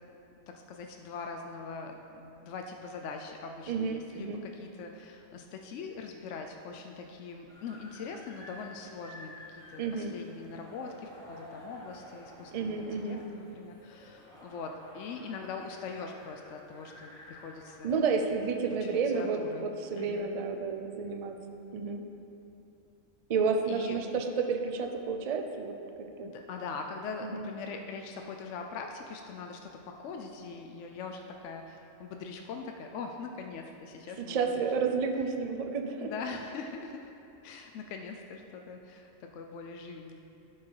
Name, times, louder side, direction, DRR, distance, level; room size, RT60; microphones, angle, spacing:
voice 1, 0.5-18.0 18.8-19.7 19.9-20.4 23.7-24.0 26.2-34.7 36.0-37.2 37.4-40.2, left 4 dB, 70° left, 3 dB, 0.9 m, -42 dB
voice 2, 3.7-4.4 9.8-10.1 12.5-13.2 17.8-21.4 21.7-22.0 23.3-25.8 26.2-26.3 27.2-27.4 34.3-36.1, right 5 dB, 80° right, 4 dB, 0.3 m, -31 dB
sound 1, 7.5-17.7, left 1 dB, 5° left, 1.5 m, -51 dB
12.0 x 4.6 x 4.7 m, 2.8 s
omnidirectional pair, 1.4 m